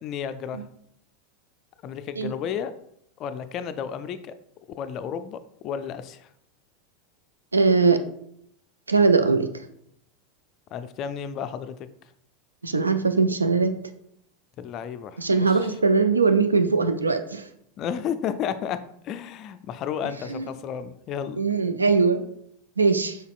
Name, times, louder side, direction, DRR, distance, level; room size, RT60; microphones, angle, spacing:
voice 1, 0.0-0.6 1.8-2.7 3.2-4.3 4.8-6.3 10.7-11.7 14.6-15.7 17.8-18.8 19.0-21.4, left 8 dB, 40° left, 11 dB, 0.3 m, -32 dB
voice 2, 7.5-8.0 8.9-9.5 12.6-13.7 15.2-17.4 20.3-20.4 21.4-22.2 22.8-23.2, right 4 dB, 85° right, 9 dB, 0.3 m, -21 dB
5.1 x 4.0 x 2.4 m, 0.72 s
figure-of-eight pair, 85°, 0 cm